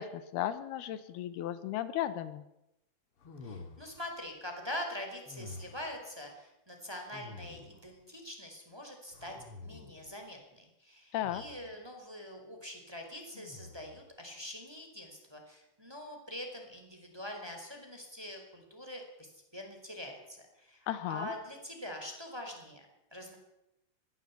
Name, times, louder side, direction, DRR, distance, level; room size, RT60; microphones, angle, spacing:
voice 1, 0.0-2.4 11.1-11.4 20.9-21.3, left 12 dB, 85° left, 13 dB, 3.1 m, -35 dB
sound 1, 3.2-4.2 5.3-6.0 7.1-7.9 9.1-10.1 11.2-11.8 13.3-14.1, left 3 dB, 45° left, 2.4 m, -49 dB
voice 2, 3.4-9.4 9.6-23.3, left 1 dB, 5° right, 3 dB, 4.2 m, -44 dB
21.5 x 15.5 x 8.4 m, 0.89 s
omnidirectional pair, 4.4 m